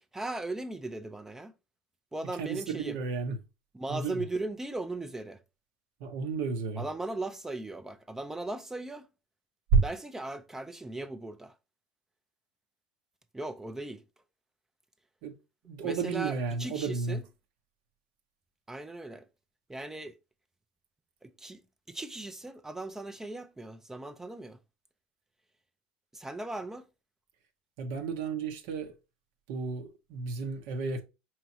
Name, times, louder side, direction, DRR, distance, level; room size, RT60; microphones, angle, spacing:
voice 1, 0.0-1.5 2.1-3.0 3.7-5.4 6.8-9.1 9.8-11.5 13.3-14.0 15.8-17.2 18.7-19.3 19.7-20.2 21.2-21.6 21.9-24.6 26.1-26.9, right 2 dB, 10° right, 0.4 m, -38 dB
voice 2, 2.4-3.4 3.9-4.2 6.0-6.8 15.2-15.3 15.6-17.2 27.8-28.9 29.5-31.0, right 4 dB, 70° right, 0.7 m, -33 dB
4.8 x 2.9 x 2.7 m
supercardioid pair, 105°, 4 cm